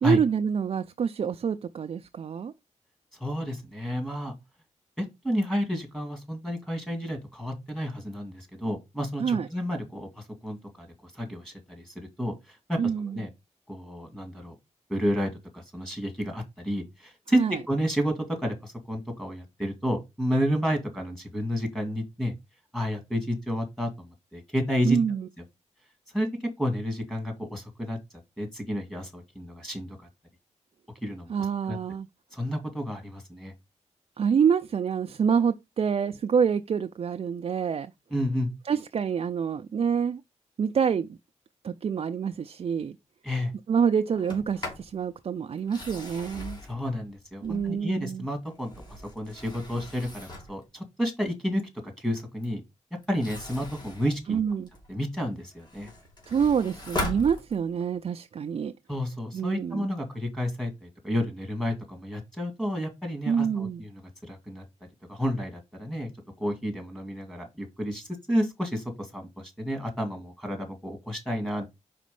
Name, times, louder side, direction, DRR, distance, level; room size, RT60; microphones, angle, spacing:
voice 1, 0.0-2.5 9.2-9.5 12.8-13.2 17.3-17.6 24.8-25.3 31.3-32.1 34.2-37.9 38.7-40.2 40.6-41.2 41.6-43.0 43.7-46.6 47.4-48.3 54.3-54.7 56.3-58.7 59.3-59.9 63.3-63.8, right 7 dB, 50° right, 0.4 m, -26 dB
voice 2, 3.1-4.3 5.0-13.3 13.7-14.5 14.9-22.3 22.7-25.0 26.1-28.0 28.4-30.0 31.0-31.3 31.7-31.8 32.3-33.5 38.1-38.5 43.2-43.5 46.7-52.6 53.1-54.4 54.9-55.9 58.9-64.6 65.1-66.1 66.4-71.7, equal, 5° left, 1.9 m, -31 dB
Sliding door, 44.1-44.9 45.6-47.9 48.5-50.6 53.0-55.0 55.4-57.9, left 1 dB, 35° left, 2.7 m, -39 dB
5.0 x 4.2 x 5.3 m
wide cardioid pair, 110°, 12 cm